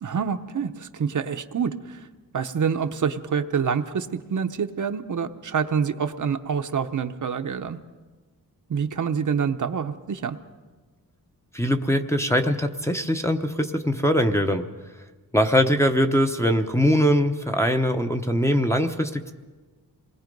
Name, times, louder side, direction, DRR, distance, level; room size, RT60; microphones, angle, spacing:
voice 1, 0.0-2.1 2.3-7.8 8.7-10.4, right 6 dB, 55° right, 7 dB, 0.8 m, -27 dB
voice 2, 11.5-14.7 15.3-19.3, equal, 5° left, 3 dB, 0.8 m, -22 dB
27.0 x 20.5 x 5.3 m, 1.3 s
wide cardioid pair, 165°, 37 cm